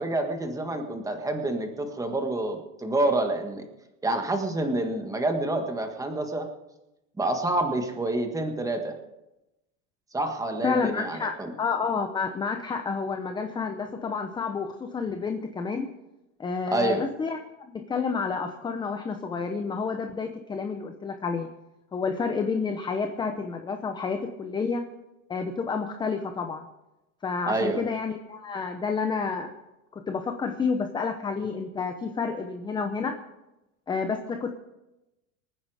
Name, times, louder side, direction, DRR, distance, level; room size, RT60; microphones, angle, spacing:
voice 1, 0.0-3.7 4.0-6.5 7.2-9.0 10.1-11.5 16.7-17.0 27.4-27.8, right 2 dB, 10° right, 5 dB, 1.6 m, -28 dB
voice 2, 10.6-11.3 11.6-15.9 16.4-17.4 17.7-21.5 21.9-24.8 25.3-26.7 27.2-29.5 29.9-33.2 33.9-34.5, left 5 dB, 10° left, 6 dB, 0.8 m, -29 dB
26.0 x 9.8 x 4.9 m, 0.96 s
supercardioid pair, 150°, 42 cm